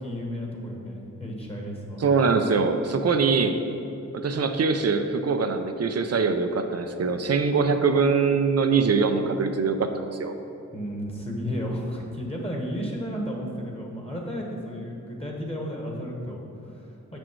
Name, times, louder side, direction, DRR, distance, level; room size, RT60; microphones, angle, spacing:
voice 1, 0.0-2.0 10.7-17.2, equal, 20° left, -1 dB, 1.3 m, -33 dB
voice 2, 2.0-3.6 4.1-10.3, right 5 dB, 55° right, 7 dB, 0.5 m, -23 dB
6.3 x 6.2 x 4.6 m, 2.9 s
cardioid pair, 75°, 30 cm